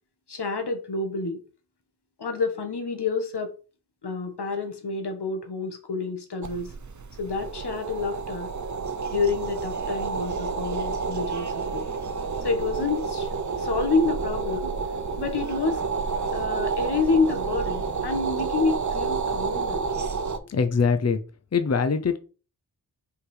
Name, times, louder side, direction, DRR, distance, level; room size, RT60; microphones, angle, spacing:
voice 1, 0.3-1.4 2.2-3.5 4.0-6.7 7.2-8.5 9.1-11.9 12.4-14.8 15.2-15.8 16.3-19.9, left 4 dB, 85° left, 1.4 m, -28 dB
sound 1, 6.4-20.4, right 5 dB, 50° right, 0.8 m, -29 dB
voice 2, 20.5-21.2 21.5-22.2, left 5 dB, 40° left, 0.7 m, -22 dB
5.7 x 3.9 x 4.9 m
wide cardioid pair, 90°, 39 cm